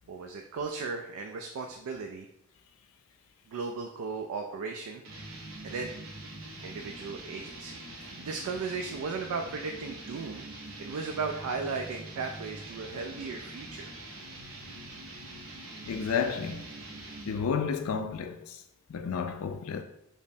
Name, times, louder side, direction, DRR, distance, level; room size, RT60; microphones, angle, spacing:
voice 1, 0.1-2.3 3.5-5.0 5.6-5.9 6.6-10.5 10.8-13.9, right 4 dB, 85° right, 0.3 m, -36 dB
sound 1, 5.0-17.6, right 2 dB, 60° right, 0.7 m, -44 dB
voice 2, 15.8-16.6 17.3-18.6 18.9-19.8, left 6 dB, 80° left, 0.3 m, -31 dB
5.1 x 2.0 x 2.7 m
head